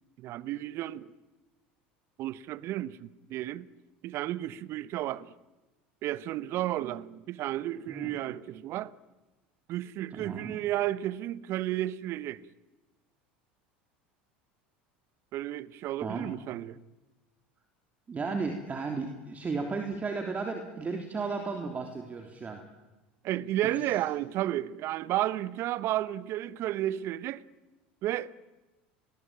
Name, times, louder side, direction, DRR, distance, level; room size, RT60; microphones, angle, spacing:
voice 1, 0.2-1.1 2.2-3.7 4.0-5.3 6.0-8.9 9.7-12.4 15.3-16.8 23.2-27.4 28.0-28.4, right 14 dB, 55° right, 1.1 m, -32 dB
voice 2, 10.1-10.6 16.0-16.3 18.1-22.6, right 4 dB, 30° right, 3.4 m, -34 dB
29.5 x 22.0 x 9.0 m
hypercardioid pair, 80°, 5 cm